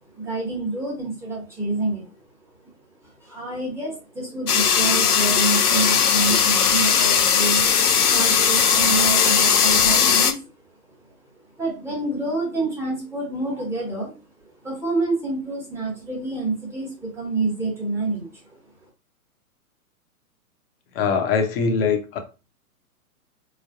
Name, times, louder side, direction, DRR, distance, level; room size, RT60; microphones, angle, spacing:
voice 1, 0.2-2.1 3.0-7.7 8.1-10.5 11.6-14.1 14.6-18.5, right 2 dB, 5° right, 1.1 m, -27 dB
sound 1, 4.5-10.3, left 7 dB, 85° left, 0.7 m, -18 dB
voice 2, 20.9-22.2, left 5 dB, 40° left, 0.9 m, -22 dB
4.1 x 3.3 x 2.4 m
figure-of-eight pair, 115°, 44 cm